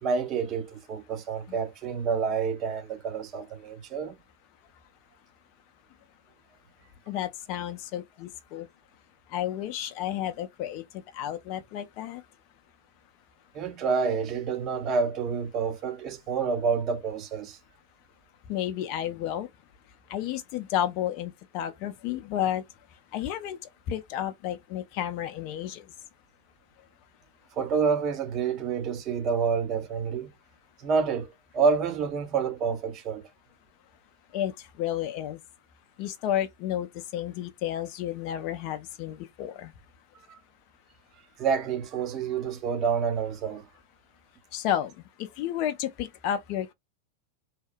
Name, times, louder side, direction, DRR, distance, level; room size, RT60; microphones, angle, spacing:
voice 1, 0.0-4.2 13.5-17.6 27.6-30.3 30.8-33.2 40.3-40.4 41.4-43.6, right 5 dB, 35° right, 0.6 m, -28 dB
voice 2, 7.1-8.7 9.3-10.8 11.1-12.2 18.5-19.5 20.1-22.6 23.1-23.6 23.9-25.8 34.3-34.5 34.8-35.4 36.0-36.9 37.1-39.7 44.5-44.9 45.4-46.7, left 11 dB, 45° left, 0.3 m, -31 dB
2.8 x 2.0 x 2.4 m
figure-of-eight pair, 90°, 0 cm